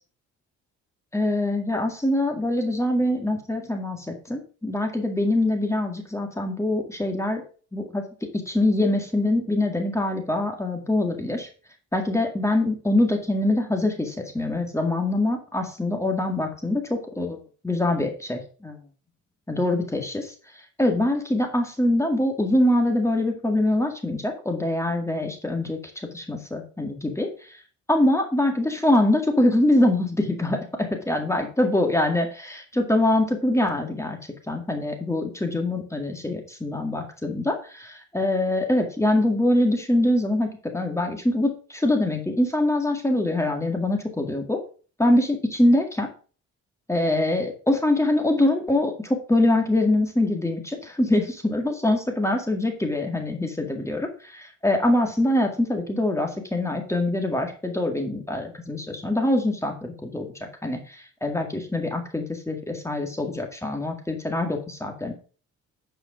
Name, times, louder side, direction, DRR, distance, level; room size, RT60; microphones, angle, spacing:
voice 1, 1.1-7.4 7.7-8.0 8.3-11.5 11.9-18.8 19.5-20.3 20.8-25.8 26.1-27.6 27.9-34.2 34.5-44.6 45.0-46.1 46.9-54.1 54.6-60.3 60.6-65.1, left 1 dB, 10° left, 3 dB, 2.0 m, -24 dB
9.9 x 5.0 x 5.0 m, 0.38 s
cardioid pair, 90°, 30 cm